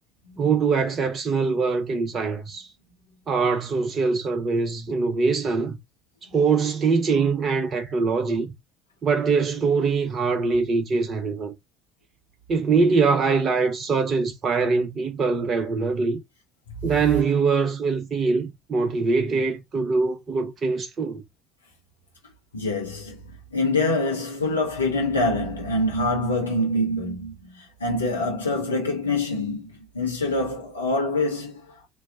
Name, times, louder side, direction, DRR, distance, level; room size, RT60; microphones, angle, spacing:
voice 1, 0.4-2.7 3.3-5.8 6.3-8.5 9.0-11.5 12.5-16.2 16.8-21.2, right 4 dB, 40° right, 0.8 m, -23 dB
voice 2, 22.5-31.7, left 2 dB, 85° left, 1.4 m, -25 dB
3.2 x 3.1 x 3.6 m
figure-of-eight pair, 55°, 0 cm